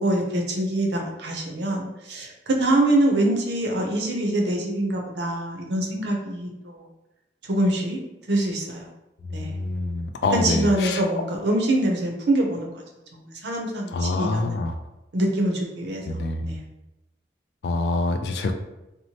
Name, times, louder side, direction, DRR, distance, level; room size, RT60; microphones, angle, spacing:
voice 1, 0.0-6.9 7.5-8.0 8.3-8.9 9.3-9.6 10.3-12.7 13.1-14.6 15.1-16.2 16.5-16.6, right 1 dB, 75° right, 1 dB, 0.6 m, -24 dB
voice 2, 9.2-11.0 13.9-14.8 16.0-16.6 17.6-18.5, left 2 dB, 70° left, 6 dB, 0.3 m, -26 dB
2.9 x 2.0 x 2.8 m, 0.97 s
head